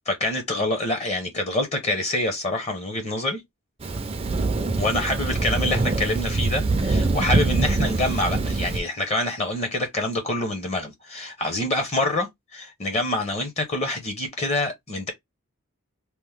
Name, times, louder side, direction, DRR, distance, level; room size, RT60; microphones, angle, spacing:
voice 1, 0.1-3.4 4.8-15.1, left 1 dB, 30° left, 0.7 m, -26 dB
Thunder, 3.8-8.8, right 3 dB, 25° right, 0.4 m, -24 dB
2.9 x 2.0 x 3.3 m
head